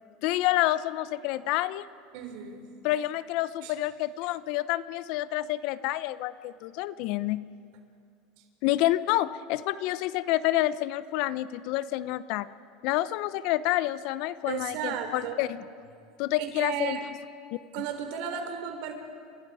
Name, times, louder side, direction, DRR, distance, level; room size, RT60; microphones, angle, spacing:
voice 1, 0.2-1.9 2.8-7.5 8.6-12.5 12.8-15.6 16.2-17.0, left 15 dB, 65° left, 16 dB, 0.7 m, -28 dB
voice 2, 2.1-2.7 3.6-3.7 14.4-15.4 16.4-17.0 17.7-18.9, right 8 dB, 70° right, 5 dB, 3.6 m, -34 dB
29.5 x 26.5 x 4.9 m, 2.3 s
supercardioid pair, 125°, 0 cm